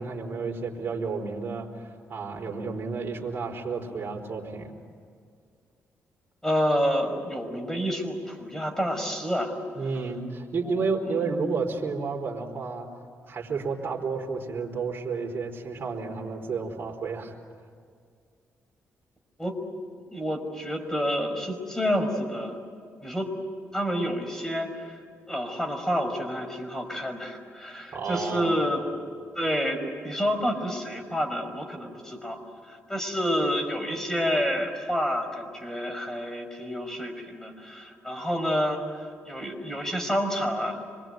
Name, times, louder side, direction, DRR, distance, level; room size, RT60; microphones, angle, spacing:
voice 1, 0.0-4.7 9.7-12.9 13.3-17.3 27.9-28.6, right 4 dB, 45° right, -2 dB, 4.6 m, -31 dB
voice 2, 6.4-9.5 10.6-10.7 19.4-19.6 19.9-22.6 23.0-23.3 23.7-25.0 25.3-28.8 29.4-32.4 32.7-40.8, equal, 10° left, 5 dB, 5.8 m, -29 dB
26.5 x 22.5 x 9.4 m, 2.1 s
cardioid pair, 75°, 5 cm